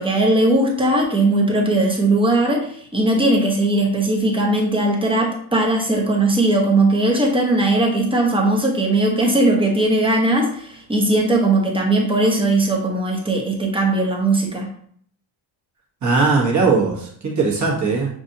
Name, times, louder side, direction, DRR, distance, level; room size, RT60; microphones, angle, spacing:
voice 1, 0.0-14.7, right 2 dB, 10° right, -1 dB, 0.9 m, -18 dB
voice 2, 16.0-18.1, right 4 dB, 35° right, -2 dB, 1.2 m, -19 dB
6.0 x 2.5 x 2.7 m, 0.62 s
cardioid pair, 125°, 48 cm